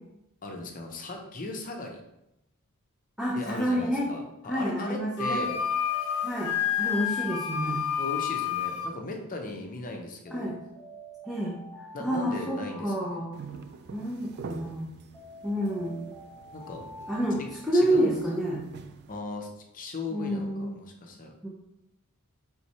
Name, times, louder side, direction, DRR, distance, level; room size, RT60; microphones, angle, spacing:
voice 1, 0.4-2.0 3.3-5.6 8.0-10.5 11.9-13.2 16.5-16.8 17.7-18.5 19.1-19.5 19.7-21.3, left 2 dB, 40° left, 2 dB, 0.6 m, -37 dB
voice 2, 3.2-4.1 4.5-5.4 6.2-7.9 10.3-10.6 11.3-11.6 12.0-13.4 13.9-14.9 15.4-16.1 17.1-17.4 17.6-18.6 20.1-20.8 21.4-21.5, equal, ahead, -6 dB, 0.6 m, -29 dB
Alarm, 3.3-3.7 5.4-9.1 10.3-14.0 15.1-18.4, equal, 15° left, 1.2 m, -47 dB
Wind instrument woodwind instrument, 5.2-8.9, left 8 dB, 85° left, 0.6 m, -29 dB
sound 1, 13.3-19.2, right 5 dB, 50° right, 0.3 m, -46 dB
3.5 x 3.1 x 4.2 m, 0.86 s
head